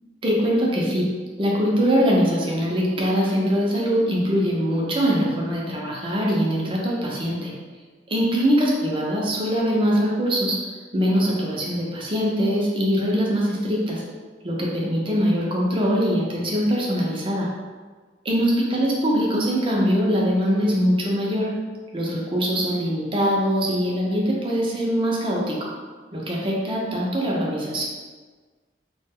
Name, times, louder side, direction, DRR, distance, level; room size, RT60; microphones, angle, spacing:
voice 1, 0.2-1.1 1.4-7.5 8.1-10.6 10.9-14.0 14.4-17.5 18.2-21.5 21.9-25.7 26.1-27.8, equal, 30° right, -3 dB, 0.5 m, -22 dB
2.3 x 2.1 x 3.4 m, 1.4 s
head